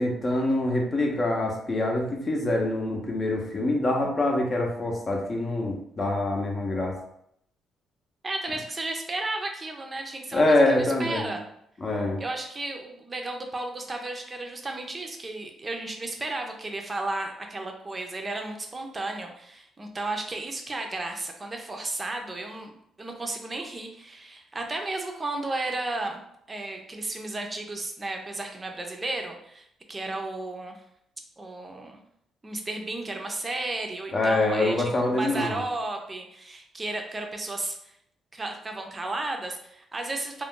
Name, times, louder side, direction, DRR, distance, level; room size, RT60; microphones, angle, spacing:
voice 1, 0.0-6.9 10.3-11.3 11.8-12.2 34.1-35.6, left 2 dB, 35° left, 1 dB, 0.7 m, -25 dB
voice 2, 8.2-11.4 12.2-26.2 26.5-30.8 31.4-32.0 32.4-37.9 38.3-40.4, right 2 dB, 25° right, 3 dB, 0.6 m, -33 dB
2.4 x 2.2 x 3.7 m, 0.73 s
cardioid pair, 90°, 0 cm